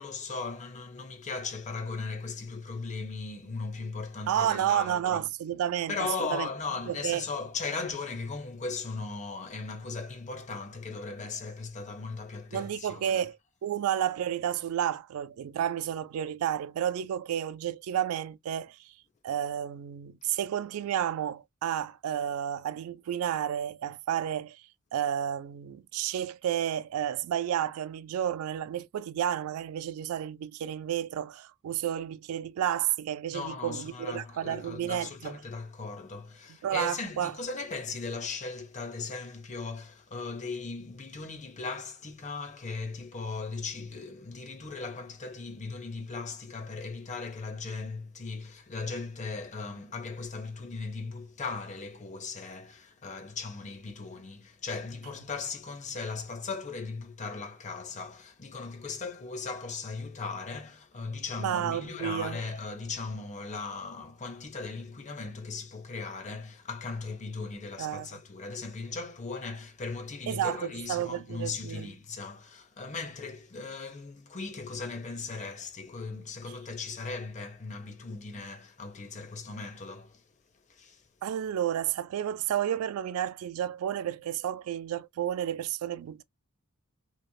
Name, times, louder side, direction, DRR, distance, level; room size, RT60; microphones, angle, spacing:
voice 1, 0.0-5.2 5.9-13.2 33.3-80.2 80.7-81.0, left 4 dB, 35° left, 0.7 m, -38 dB
voice 2, 4.3-6.5 6.9-7.3 12.5-18.9 19.2-24.6 24.9-35.4 36.6-37.4 61.4-62.4 67.8-68.2 70.3-71.9 81.2-86.2, right 10 dB, 85° right, 0.3 m, -31 dB
3.1 x 2.4 x 2.2 m
head